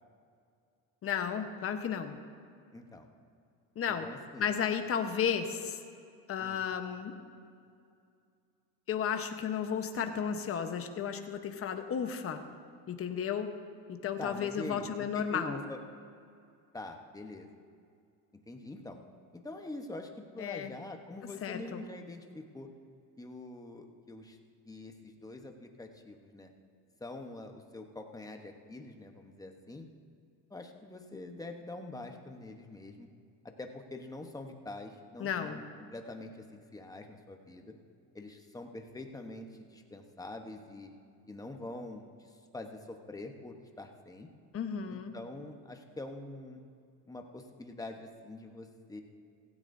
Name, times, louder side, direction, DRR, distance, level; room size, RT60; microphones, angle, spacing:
voice 1, 1.0-2.2 3.8-4.1 4.4-5.9 6.3-7.2 8.9-12.4 12.9-13.5 13.9-15.6 20.4-20.7 21.4-21.8 35.2-35.6 44.5-45.1, left 7 dB, 35° left, 7 dB, 1.0 m, -33 dB
voice 2, 2.7-3.1 4.0-4.5 6.4-6.6 14.2-15.8 16.7-17.5 18.5-19.0 19.3-22.7 23.2-24.4 24.7-26.5 27.0-29.9 30.5-33.1 33.4-35.6 35.9-37.7 38.1-40.9 41.3-44.3 44.9-46.6 47.1-49.0, left 2 dB, 10° left, 4 dB, 1.0 m, -45 dB
16.0 x 16.0 x 2.7 m, 2.4 s
cardioid pair, 135°, 39 cm